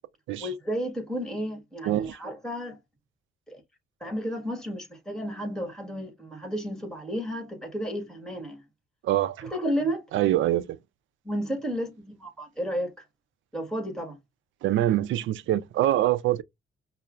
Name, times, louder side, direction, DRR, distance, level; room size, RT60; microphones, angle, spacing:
voice 1, 0.4-2.8 3.5-3.6 4.0-8.6 9.4-10.0 11.2-13.0 13.5-14.2, equal, 5° left, 1.6 m, -32 dB
voice 2, 9.0-9.4 10.1-10.8 14.6-16.4, right 13 dB, 80° right, 0.4 m, -24 dB
5.4 x 2.1 x 2.4 m
cardioid pair, 90°, 20 cm